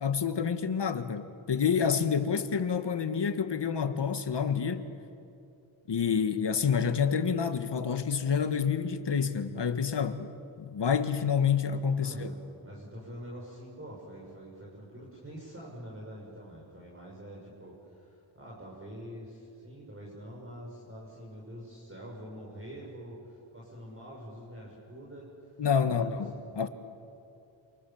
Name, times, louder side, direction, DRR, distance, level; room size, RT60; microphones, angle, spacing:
voice 1, 0.0-4.8 5.9-10.3 10.6-12.3 25.6-26.7, left 6 dB, 55° left, 1.8 m, -28 dB
voice 2, 12.0-25.3 25.9-26.2, equal, 25° right, 6.2 m, -45 dB
28.5 x 27.0 x 7.3 m
cardioid pair, 85°, 48 cm